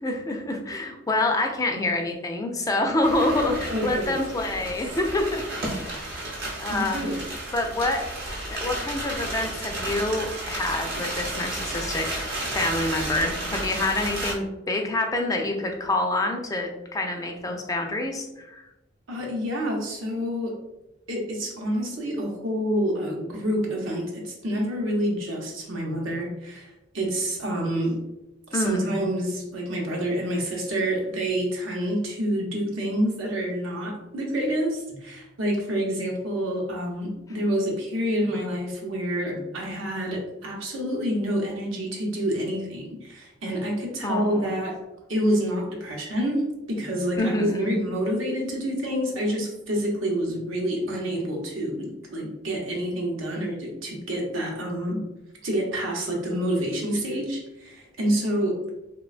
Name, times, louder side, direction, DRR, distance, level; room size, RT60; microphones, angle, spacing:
voice 1, 0.0-5.9 6.6-7.2 7.5-8.0 8.6-18.6 28.5-29.0 44.0-44.5 47.2-47.7, left 2 dB, 20° left, 3 dB, 0.3 m, -27 dB
sound 1, 3.0-14.3, right 1 dB, 55° right, 0.9 m, -32 dB
voice 2, 3.7-4.2 6.7-7.2 19.1-20.6 21.1-28.0 28.5-44.8 45.1-55.1 55.4-58.6, equal, 90° right, -1 dB, 0.8 m, -28 dB
3.0 x 2.2 x 2.4 m, 0.96 s
head